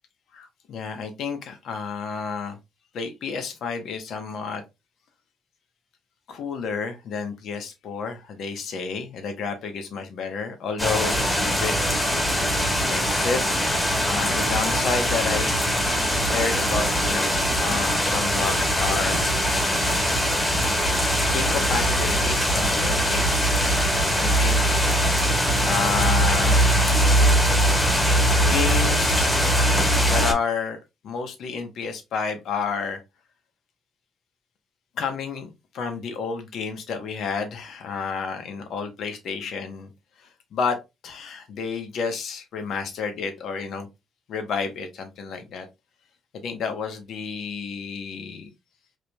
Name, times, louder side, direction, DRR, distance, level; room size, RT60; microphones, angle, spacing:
voice 1, 0.3-2.6 2.9-4.6 6.3-11.8 12.9-13.4 14.0-16.0 16.3-19.2 19.7-20.0 21.3-24.6 25.6-26.6 28.4-29.6 30.1-30.8 31.0-33.0 35.0-39.9 40.2-43.9 44.3-45.7 46.3-48.5, left 5 dB, 70° left, 0.9 m, -30 dB
sound 1, 10.8-30.3, equal, 20° left, 1.7 m, -21 dB
4.8 x 3.1 x 2.2 m
cardioid pair, 90°, 0 cm